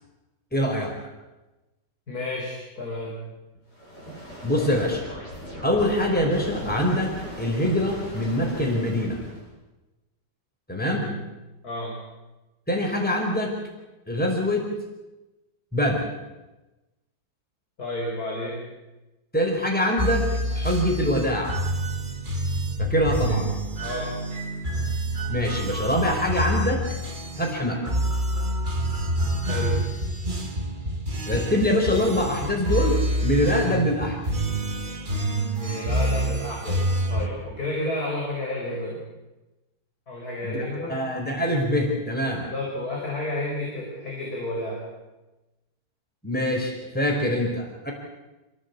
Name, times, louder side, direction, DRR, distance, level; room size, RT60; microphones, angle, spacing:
voice 1, 0.5-0.9 4.4-5.0 5.6-9.2 10.7-11.1 12.7-13.5 14.1-14.7 15.7-16.1 19.3-21.6 22.8-23.5 25.3-26.8 27.4-27.9 31.3-34.2 40.4-42.5 46.2-47.9, left 1 dB, 5° left, 0 dB, 4.8 m, -24 dB
voice 2, 2.1-3.2 10.9-11.1 11.6-11.9 17.8-18.7 23.2-23.4 23.8-24.2 29.5-29.8 35.5-39.0 40.1-41.0 42.5-44.8 47.3-47.4, left 1 dB, 60° left, -3 dB, 6.2 m, -31 dB
sound 1, 3.7-9.5, left 1 dB, 90° left, 8.7 m, -38 dB
sound 2, 20.0-37.3, right 1 dB, 30° right, 2.2 m, -27 dB
28.0 x 17.5 x 8.4 m, 1.1 s
omnidirectional pair, 1.8 m